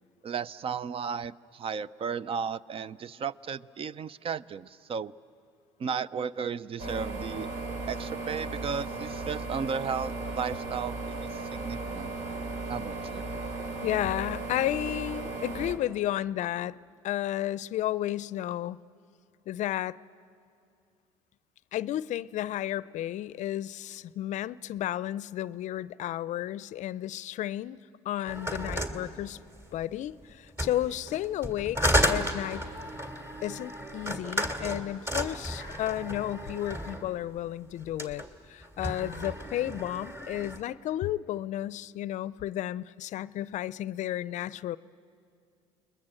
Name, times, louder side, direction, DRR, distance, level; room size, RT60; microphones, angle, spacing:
voice 1, 0.2-5.1 5.8-7.5 7.9-10.9 11.3-12.1 12.7-13.2, right 6 dB, 40° right, 19 dB, 0.5 m, -34 dB
sound 1, 6.8-15.7, right 3 dB, 65° right, 3.0 m, -36 dB
voice 2, 13.8-16.8 17.0-18.8 19.5-20.0 21.7-27.8 28.1-29.4 29.7-31.8 32.1-32.6 33.4-44.8, left 13 dB, 55° left, 19 dB, 0.5 m, -32 dB
sound 2, 28.3-29.8 30.5-37.1 37.8-38.3 38.6-40.6, equal, 20° right, 2.5 m, -32 dB
29.0 x 21.0 x 7.8 m, 2.4 s
hypercardioid pair, 70°, 14 cm